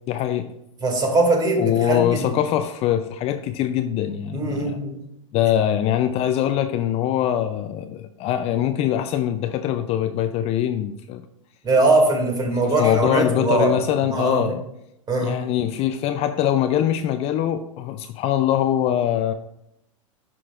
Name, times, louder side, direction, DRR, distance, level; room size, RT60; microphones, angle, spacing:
voice 1, 0.1-0.5 1.6-4.8 5.3-11.2 12.6-14.6 15.2-19.3, left 11 dB, 35° left, 0.5 m, -23 dB
voice 2, 0.8-2.3 4.3-5.0 11.6-13.7 14.1-14.6 15.1-15.4, right 2 dB, 25° right, 2.3 m, -21 dB
11.0 x 6.1 x 2.4 m
hypercardioid pair, 100°, 17 cm